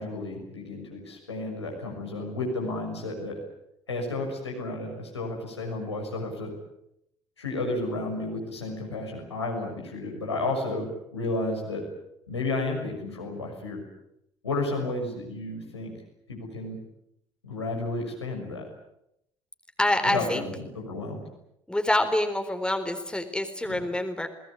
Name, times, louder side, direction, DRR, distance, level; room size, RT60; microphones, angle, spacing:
voice 1, 0.0-3.4 3.9-6.5 7.4-11.8 12.3-13.8 14.4-15.9 16.3-16.8 17.4-18.6 20.0-21.2 23.7-23.8, left 2 dB, 85° left, 0 dB, 6.3 m, -32 dB
voice 2, 19.8-20.5 21.7-24.3, left 1 dB, 5° left, 7 dB, 3.9 m, -26 dB
29.0 x 20.0 x 8.5 m, 0.79 s
figure-of-eight pair, 50°, 14 cm